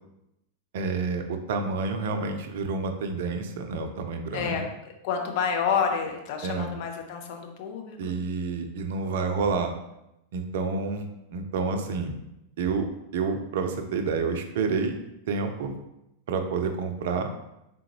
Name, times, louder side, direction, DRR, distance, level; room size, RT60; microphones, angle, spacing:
voice 1, 0.7-4.6 6.4-6.7 8.0-9.7 10.3-12.2 12.6-12.9 13.1-15.0 15.3-15.8 16.3-17.3, right 4 dB, 55° right, 6 dB, 0.5 m, -29 dB
voice 2, 4.3-8.1, left 6 dB, 50° left, 3 dB, 0.6 m, -29 dB
3.7 x 3.7 x 2.9 m, 0.87 s
figure-of-eight pair, 90°, 0 cm